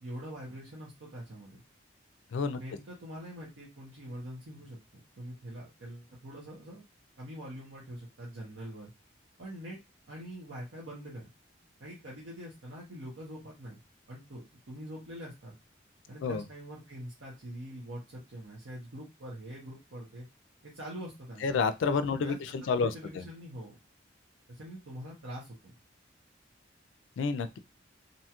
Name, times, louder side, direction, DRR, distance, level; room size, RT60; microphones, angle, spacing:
voice 1, 0.0-1.6 2.6-4.8 5.2-6.8 7.2-8.9 9.4-9.8 10.1-11.3 11.8-13.8 14.1-15.5 16.1-20.2 20.6-21.6 22.0-22.5 22.8-23.8 24.5-25.7, equal, 80° right, -5 dB, 0.9 m, -44 dB
voice 2, 21.4-22.9 23.2-23.3 27.2-27.6, left 5 dB, 80° left, 11 dB, 0.3 m, -29 dB
2.7 x 2.3 x 2.8 m, 0.24 s
head